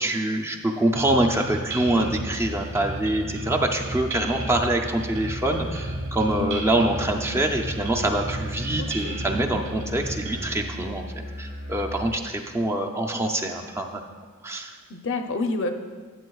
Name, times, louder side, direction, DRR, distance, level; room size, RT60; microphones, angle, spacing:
voice 1, 0.0-14.0 14.4-14.8, right 1 dB, 10° right, 2 dB, 0.5 m, -25 dB
sound 1, 0.9-10.5, right 1 dB, 65° right, 2.4 m, -34 dB
Musical instrument, 1.8-12.2, equal, 35° right, 1.2 m, -37 dB
voice 2, 8.8-9.2 14.9-15.7, left 3 dB, 60° left, 6 dB, 0.6 m, -28 dB
12.5 x 8.5 x 2.3 m, 1.5 s
head